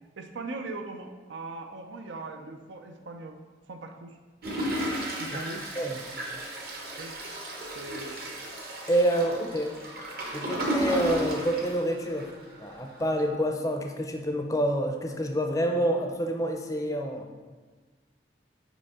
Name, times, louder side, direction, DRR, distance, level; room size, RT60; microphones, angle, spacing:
voice 1, 0.2-3.4 3.7-4.2 5.2-5.6 7.0-7.1 7.7-8.3, right 3 dB, 90° right, 5 dB, 0.6 m, -40 dB
Toilet flush, 4.4-12.5 12.9-13.0 13.2-13.3, right 1 dB, 55° right, 0.9 m, -33 dB
voice 2, 8.9-9.7 10.3-12.3 12.6-17.4, right 1 dB, 20° left, 3 dB, 0.4 m, -27 dB
5.2 x 5.2 x 3.6 m, 1.4 s
head